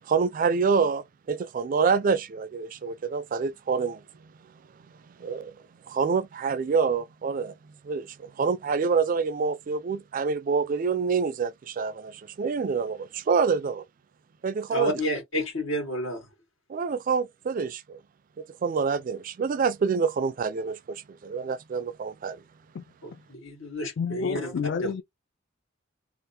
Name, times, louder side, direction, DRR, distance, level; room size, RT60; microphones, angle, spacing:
voice 1, 0.0-4.3 5.2-5.6 5.9-13.9 14.4-14.9 16.7-18.0 18.4-22.4, right 5 dB, 45° right, 0.3 m, -27 dB
voice 2, 14.7-16.3 23.0-24.9, equal, 80° left, 2.1 m, -31 dB
voice 3, 24.0-25.0, left 6 dB, 60° left, 0.3 m, -30 dB
3.3 x 2.4 x 2.8 m
head